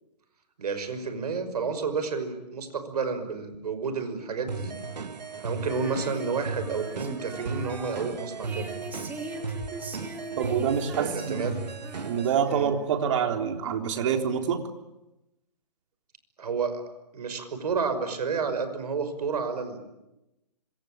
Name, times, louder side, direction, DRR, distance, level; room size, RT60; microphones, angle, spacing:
voice 1, 0.6-4.7 5.4-8.7 10.9-11.6 12.5-12.7 16.4-16.8 17.1-19.8, right 5 dB, 65° right, 10 dB, 5.7 m, -30 dB
sound 1, 4.5-12.3, right 4 dB, 85° right, 2.3 m, -36 dB
Female singing, 5.6-13.1, right 2 dB, 10° right, 3.0 m, -42 dB
voice 2, 10.4-11.5 12.0-14.6, right 7 dB, 45° right, 5 dB, 3.7 m, -26 dB
26.0 x 24.5 x 8.9 m, 0.95 s
hypercardioid pair, 145°, 21 cm